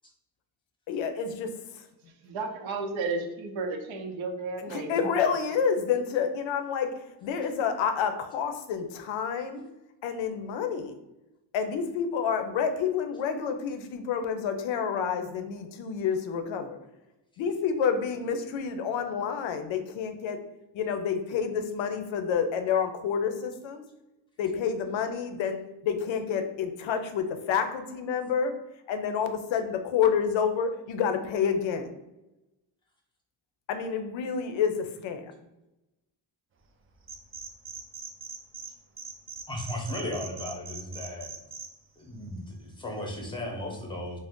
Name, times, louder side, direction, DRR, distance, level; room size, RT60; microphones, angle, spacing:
voice 1, 0.9-1.8 4.7-9.6 10.0-10.9 11.5-16.8 17.4-20.4 20.7-23.8 24.4-28.5 28.9-31.9 33.7-35.3, left 7 dB, 80° left, 7 dB, 0.5 m, -29 dB
voice 2, 2.2-5.1, right 3 dB, 80° right, 3 dB, 0.7 m, -33 dB
sound 1, 37.0-38.7 39.0-41.7, right 5 dB, 30° right, 0.3 m, -41 dB
voice 3, 39.5-41.3 42.0-44.2, left 1 dB, 10° left, 0 dB, 0.6 m, -35 dB
2.5 x 2.1 x 3.5 m, 0.95 s
cardioid pair, 105°, 46 cm